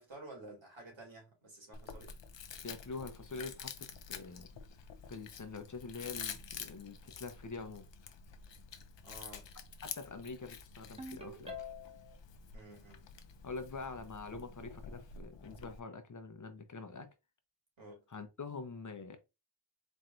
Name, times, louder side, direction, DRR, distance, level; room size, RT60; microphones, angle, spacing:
voice 1, 0.0-2.1 9.0-9.5 12.5-13.0 17.8-18.0, right 2 dB, 80° right, 2.5 m, -52 dB
Chewing mastication, 1.7-15.8, left 6 dB, 70° left, 0.7 m, -49 dB
voice 2, 2.6-4.5 5.1-7.9 9.8-11.6 13.4-17.1 18.1-19.2, left 4 dB, 40° left, 0.8 m, -45 dB
Ringtone, 11.0-12.1, left 3 dB, 15° right, 1.3 m, -45 dB
4.4 x 3.2 x 2.6 m
wide cardioid pair, 130°, 45 cm